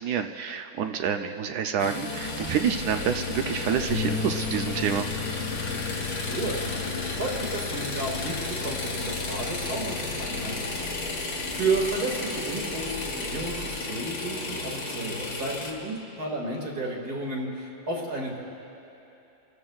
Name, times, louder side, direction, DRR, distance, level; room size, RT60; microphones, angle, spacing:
voice 1, 0.0-5.1, right 8 dB, 70° right, 6 dB, 1.0 m, -28 dB
sound 1, 1.8-15.7, left 3 dB, 70° left, 2.3 m, -33 dB
sound 2, 2.2-13.8, left 4 dB, 55° left, 0.8 m, -44 dB
sound 3, 3.9-10.1, left 4 dB, 30° left, 1.2 m, -37 dB
voice 2, 6.2-10.9 11.5-18.4, right 2 dB, 55° right, -1 dB, 2.5 m, -32 dB
28.5 x 14.5 x 2.3 m, 2.9 s
omnidirectional pair, 2.0 m